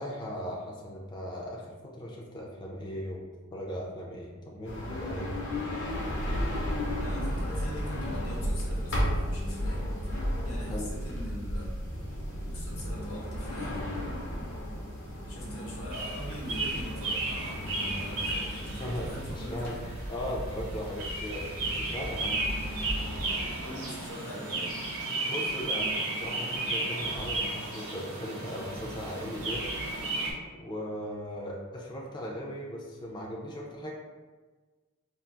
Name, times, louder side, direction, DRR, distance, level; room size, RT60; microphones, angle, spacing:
voice 1, 0.0-3.2 3.5-5.3 10.7-10.9 18.8-22.4 25.2-29.7 30.6-33.9, equal, 20° left, -2 dB, 0.3 m, -38 dB
sound 1, 4.6-23.6, equal, 60° left, 0.7 m, -36 dB
sound 2, 5.9-19.7, equal, 60° right, 0.4 m, -37 dB
voice 2, 7.0-9.9 10.4-11.9 12.4-13.9 15.3-19.8 23.6-24.8, equal, 85° left, -4 dB, 0.9 m, -42 dB
sound 3, 15.9-30.3, right 2 dB, 85° right, 0.8 m, -34 dB
2.3 x 2.3 x 3.8 m, 1.3 s
head